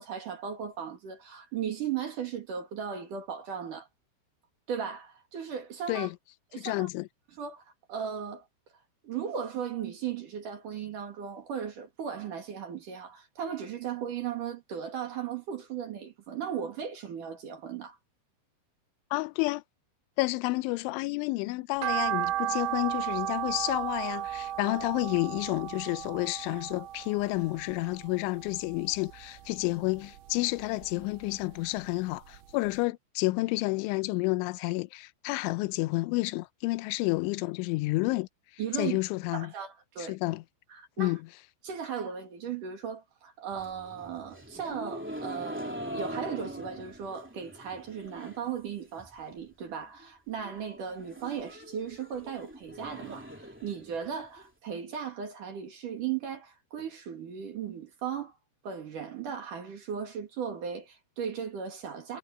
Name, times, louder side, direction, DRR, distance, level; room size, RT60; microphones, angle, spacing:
voice 1, 0.0-3.9 4.7-6.1 6.5-6.9 7.4-7.6 7.9-8.5 9.0-18.0 38.6-39.0 39.3-40.2 40.7-41.2 41.6-58.4 58.6-62.2, right 7 dB, 50° right, 2.9 m, -37 dB
voice 2, 6.6-7.1 19.1-19.6 20.2-38.3 38.8-39.5 40.0-40.4 41.0-41.2, left 22 dB, 80° left, 2.9 m, -30 dB
sound 1, 21.8-28.1 28.5-29.6 30.0-31.4 31.8-31.9 32.3-32.4 32.7-32.8, right 13 dB, 75° right, 2.7 m, -34 dB
sound 2, 43.5-48.5 48.8-49.4 49.7-49.8 50.0-50.1 50.4-54.4, equal, 5° right, 1.0 m, -42 dB
omnidirectional pair, 6.0 m